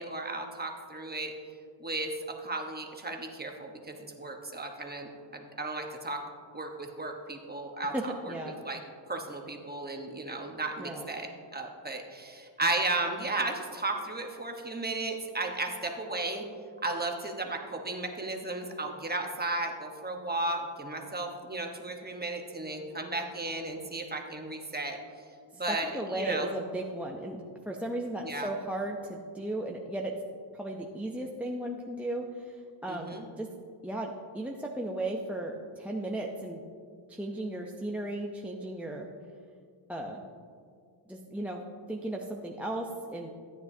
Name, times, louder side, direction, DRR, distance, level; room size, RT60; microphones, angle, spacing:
voice 1, 0.0-1.4 1.8-6.2 6.5-8.8 9.1-16.4 16.8-25.0 25.5-26.5 28.2-28.5 32.9-33.2, right 2 dB, 20° right, 2 dB, 1.0 m, -34 dB
voice 2, 7.9-8.6 10.8-11.1 25.7-30.2 30.6-33.5 33.8-36.6 37.1-39.1 39.9-40.3 41.1-43.3, right 1 dB, 5° right, -1 dB, 0.5 m, -35 dB
13.5 x 9.3 x 2.7 m, 2.2 s
wide cardioid pair, 105°, 49 cm